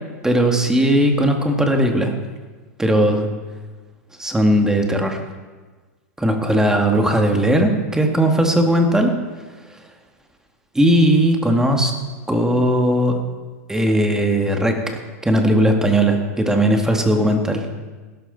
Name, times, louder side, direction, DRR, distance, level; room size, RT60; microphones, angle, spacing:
voice 1, 0.2-2.1 2.8-3.3 4.2-5.2 6.2-9.2 10.7-11.9 12.3-13.2 13.7-14.8 15.2-17.7, right 1 dB, 5° right, 3 dB, 2.1 m, -17 dB
17.0 x 13.0 x 4.1 m, 1.3 s
hypercardioid pair, 110°, 9 cm